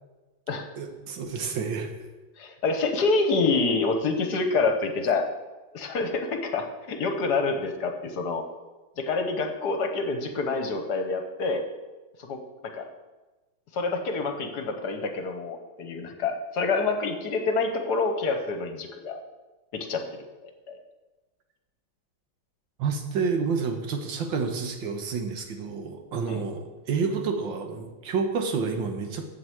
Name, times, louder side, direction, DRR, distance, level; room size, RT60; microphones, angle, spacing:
voice 1, 0.8-2.0 22.8-29.2, right 5 dB, 75° right, 4 dB, 1.8 m, -29 dB
voice 2, 2.4-5.3 5.7-8.4 9.0-11.6 12.2-12.8 13.7-19.2 19.7-20.8 26.3-26.4, left 3 dB, 60° left, 5 dB, 1.4 m, -27 dB
7.7 x 7.0 x 7.7 m, 1.2 s
omnidirectional pair, 2.1 m